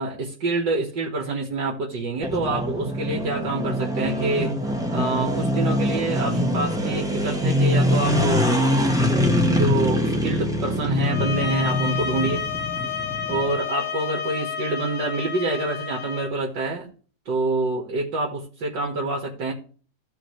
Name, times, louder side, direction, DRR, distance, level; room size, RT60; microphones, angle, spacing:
voice 1, 0.0-4.5 4.9-9.0 9.5-12.4 13.3-16.9 17.3-19.5, right 2 dB, 80° right, -1 dB, 2.4 m, -27 dB
sound 1, 2.2-13.6, left 1 dB, ahead, 1.2 m, -23 dB
sound 2, 11.0-16.3, left 7 dB, 80° left, 1.8 m, -30 dB
15.0 x 5.0 x 3.2 m, 0.40 s
omnidirectional pair, 1.9 m